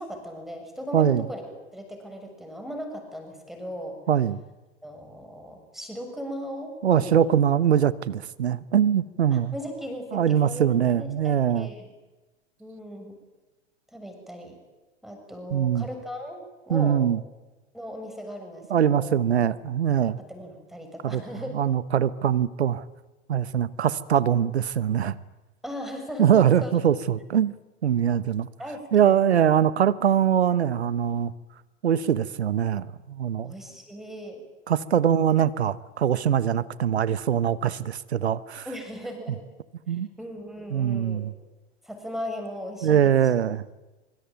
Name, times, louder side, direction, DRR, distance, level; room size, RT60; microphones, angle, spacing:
voice 1, 0.0-1.4 1.7-4.0 4.8-7.3 9.3-11.9 12.6-13.2 13.9-14.6 15.0-17.1 17.7-19.2 20.3-21.5 25.6-26.7 28.6-29.4 33.4-34.4 34.8-35.1 38.7-39.4 39.9-41.2 41.8-43.1, equal, ahead, 4 dB, 6.9 m, -37 dB
voice 2, 0.9-1.2 4.1-4.4 6.8-9.5 10.1-11.7 15.5-15.9 16.7-17.2 18.7-20.2 21.0-21.2 21.5-22.8 23.3-25.1 26.2-27.5 27.8-28.5 28.9-31.3 31.8-33.5 34.7-38.6 39.9-40.1 40.7-41.3 42.8-43.6, right 9 dB, 65° right, 19 dB, 1.1 m, -22 dB
25.0 x 24.5 x 9.2 m, 1.1 s
figure-of-eight pair, 95°, 35 cm